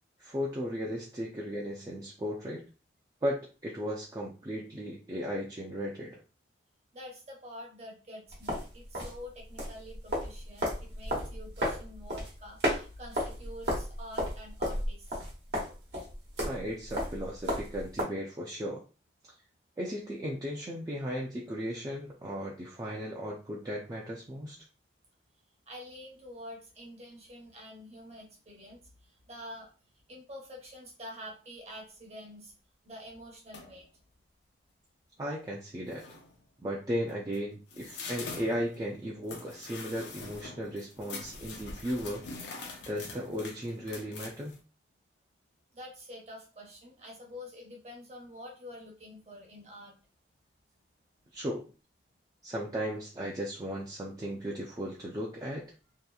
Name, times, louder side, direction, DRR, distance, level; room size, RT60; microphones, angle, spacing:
voice 1, 0.2-2.6 3.2-6.2 16.4-18.8 19.2-19.3 19.8-24.6 35.2-36.0 36.6-42.2 42.9-44.6 51.3-51.6 52.4-55.6, equal, 20° right, -3 dB, 0.4 m, -36 dB
voice 2, 6.9-15.0 25.7-28.8 29.3-29.7 30.1-32.5 32.8-33.8 45.7-49.9, left 1 dB, 35° right, 0 dB, 0.8 m, -47 dB
sound 1, 8.3-18.0, equal, 75° right, 1.0 m, -33 dB
sound 2, 33.5-33.9 35.5-35.6 35.9-36.4 37.1-44.6, left 3 dB, 85° left, 0.6 m, -44 dB
2.8 x 2.5 x 2.3 m, 0.34 s
head